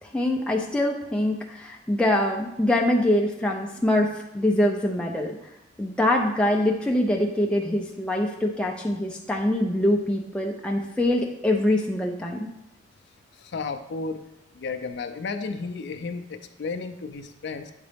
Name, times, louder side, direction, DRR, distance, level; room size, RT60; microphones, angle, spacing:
voice 1, 0.0-5.4 5.8-12.5, left 1 dB, 5° left, 0 dB, 0.4 m, -24 dB
voice 2, 13.4-14.2 14.5-17.7, left 4 dB, 65° left, 6 dB, 0.4 m, -33 dB
8.1 x 3.8 x 3.4 m, 0.88 s
head